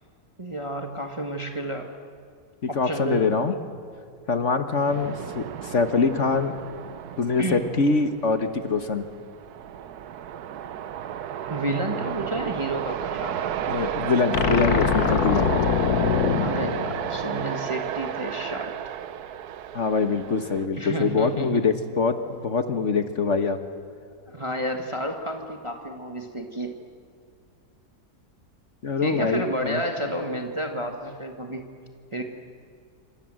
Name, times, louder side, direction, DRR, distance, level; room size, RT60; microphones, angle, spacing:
voice 1, 0.4-1.9 2.7-3.4 7.4-7.7 11.5-13.6 16.4-18.8 20.8-21.6 24.3-26.7 29.0-31.6 32.1-32.2, right 1 dB, 20° right, 4 dB, 1.7 m, -30 dB
voice 2, 2.6-3.5 4.3-6.5 7.2-9.0 13.7-15.5 19.7-23.6 28.8-29.8, left 4 dB, 50° left, 8 dB, 1.6 m, -24 dB
sound 1, 4.9-20.7, right 9 dB, 75° right, 1.4 m, -33 dB
sound 2, 14.3-17.7, left 7 dB, 70° left, 1.6 m, -24 dB
28.0 x 26.0 x 7.7 m, 2.3 s
omnidirectional pair, 1.7 m